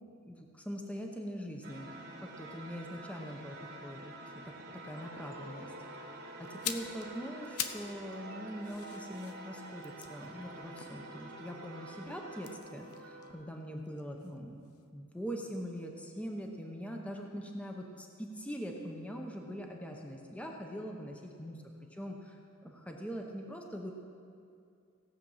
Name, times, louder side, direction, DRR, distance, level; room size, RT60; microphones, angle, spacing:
voice 1, 0.3-4.5 4.8-5.7 6.0-14.6 14.9-21.6 22.0-23.9, equal, 5° left, 1 dB, 0.8 m, -42 dB
sound 1, 1.6-12.6, right 2 dB, 45° right, 1.2 m, -49 dB
sound 2, 5.0-13.3, right 1 dB, 90° right, 1.9 m, -51 dB
sound 3, 6.4-8.0 8.3-11.5 12.3-14.4 14.6-14.8, left 9 dB, 75° left, 0.7 m, -43 dB
17.0 x 7.4 x 5.6 m, 2.5 s
head